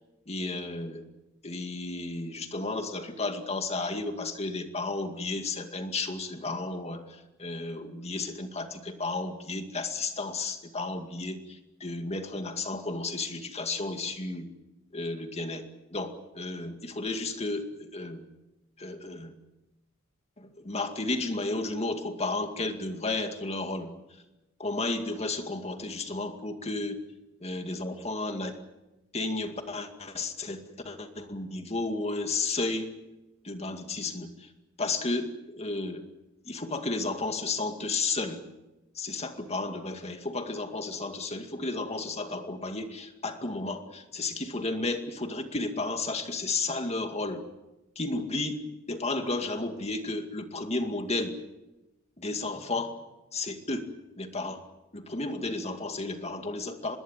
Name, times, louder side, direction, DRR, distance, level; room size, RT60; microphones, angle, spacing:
voice 1, 0.3-1.0 1.4-14.5 14.9-15.7 15.9-18.3 18.8-19.3 20.4-23.9 24.6-27.0 27.4-28.6 29.1-32.9 33.4-34.5 34.8-36.0 36.5-38.4 39.0-47.4 48.0-48.6 48.9-51.4 52.2-53.0 53.3-53.9 54.2-54.6 54.9-57.0, left 3 dB, 30° left, 6 dB, 2.2 m, -33 dB
25.5 x 20.5 x 7.5 m, 1.0 s
head